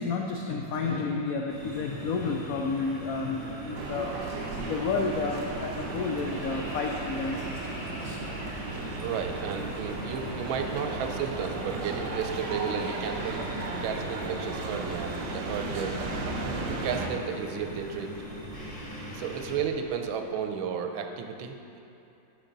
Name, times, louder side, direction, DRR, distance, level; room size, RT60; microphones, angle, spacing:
voice 1, 0.0-8.2, left 4 dB, 80° left, 1 dB, 0.7 m, -31 dB
sound 1, 1.5-19.6, right 1 dB, 20° left, 1.4 m, -41 dB
sound 2, 3.7-17.1, right 3 dB, 70° right, 1.3 m, -35 dB
sound 3, 9.0-20.6, equal, 45° left, 1.1 m, -52 dB
voice 2, 9.0-13.4 13.8-16.0 16.7-18.1 19.1-21.8, right 7 dB, 90° right, 5 dB, 1.4 m, -33 dB
12.0 x 5.3 x 3.9 m, 2.8 s
omnidirectional pair, 2.1 m